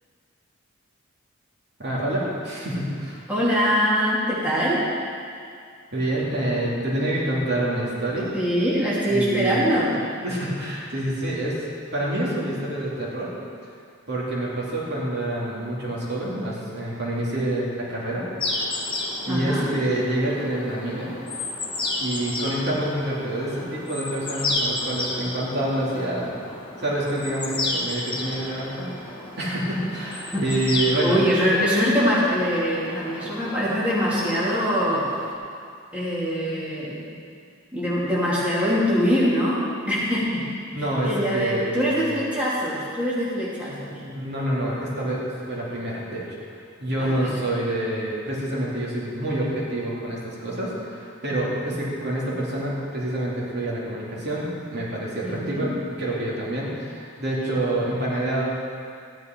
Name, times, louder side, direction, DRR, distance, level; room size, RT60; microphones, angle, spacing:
voice 1, 1.8-3.2 5.9-8.3 9.1-9.6 10.2-11.6 11.9-13.3 14.1-18.3 18.6-18.7 19.2-21.1 22.0-26.3 26.8-31.2 40.7-42.2 44.0-45.2 45.5-46.4 46.8-55.7 56.0-58.4, right 1 dB, 55° right, -6 dB, 2.7 m, -27 dB
voice 2, 3.3-4.8 8.3-9.9 19.3-19.7 30.3-30.4 31.0-35.0 35.9-37.1 37.7-40.5 41.0-43.9 47.0-47.3 55.2-55.7, equal, 5° right, -9 dB, 2.6 m, -23 dB
sound 1, 18.4-35.3, left 2 dB, 25° left, 1.5 m, -32 dB
14.5 x 10.5 x 4.5 m, 2.3 s
head